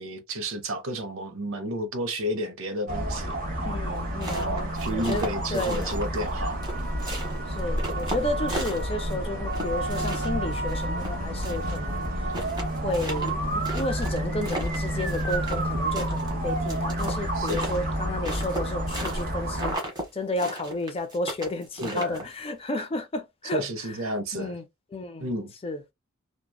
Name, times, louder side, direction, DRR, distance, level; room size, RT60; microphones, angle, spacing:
voice 1, 0.0-3.7 4.3-6.6 17.3-17.8 21.8-22.3 23.5-24.6 25.2-25.5, right 1 dB, 70° right, 0.7 m, -32 dB
sound 1, 2.9-19.7, right 1 dB, 40° right, 1.1 m, -29 dB
voice 2, 3.6-4.5 4.9-5.2 5.5-5.9 7.5-12.1 12.8-19.8 20.1-23.6 24.3-24.6 24.9-25.3 25.6-25.8, left 2 dB, 25° left, 0.5 m, -32 dB
sound 2, 4.0-6.3 6.6-9.1 9.5-11.8 12.0-12.1 12.3-15.7 15.9-19.3 19.5-20.1 20.4-22.4, right 1 dB, 20° right, 1.0 m, -35 dB
3.0 x 2.2 x 2.2 m
head